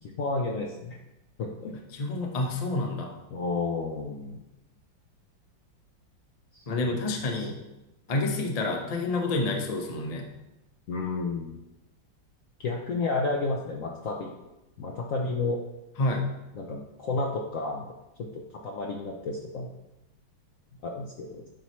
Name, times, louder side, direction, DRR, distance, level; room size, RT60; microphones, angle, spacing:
voice 1, 0.0-1.0 1.4-1.8 3.3-4.4 6.5-7.5 10.9-11.6 12.6-14.3 14.8-15.6 16.6-17.9 18.2-19.7 20.8-21.4, left 3 dB, 65° left, 0 dB, 0.8 m, -32 dB
voice 2, 1.9-3.1 6.7-7.6 8.1-10.3 16.0-16.3, left 2 dB, 45° left, 2 dB, 0.5 m, -28 dB
9.1 x 5.6 x 3.1 m, 0.96 s
omnidirectional pair, 2.2 m